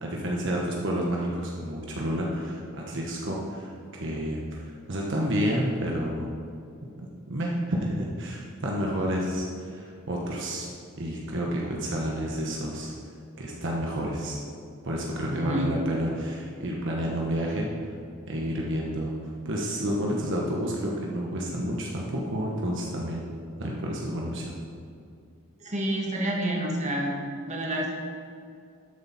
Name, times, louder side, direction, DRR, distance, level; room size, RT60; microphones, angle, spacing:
voice 1, 0.0-6.3 7.3-10.7 11.0-12.9 13.4-14.4 14.8-17.9 18.3-19.1 19.4-23.2 23.6-24.5, equal, 60° right, -2 dB, 1.2 m, -30 dB
voice 2, 15.3-15.7 25.6-27.1 27.5-27.9, right 1 dB, 35° right, -1 dB, 1.7 m, -28 dB
13.0 x 7.8 x 4.2 m, 2.4 s
head